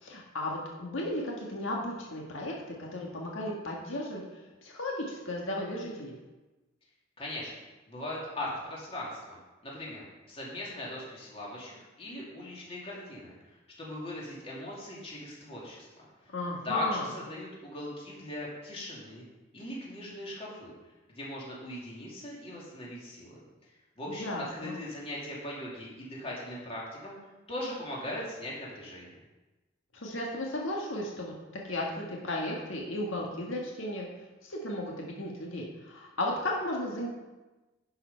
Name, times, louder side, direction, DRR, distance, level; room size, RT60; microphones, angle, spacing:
voice 1, 0.0-6.2 16.3-17.1 24.1-24.8 29.9-31.3 31.7-34.1 34.4-37.1, left 1 dB, 75° left, -2 dB, 1.7 m, -35 dB
voice 2, 7.2-7.5 7.9-9.4 9.6-13.4 13.8-16.3 16.6-19.2 19.5-20.7 21.1-23.4 24.0-27.2 27.5-29.1, left 1 dB, 30° left, -5 dB, 2.7 m, -39 dB
11.0 x 5.7 x 5.6 m, 1.1 s
head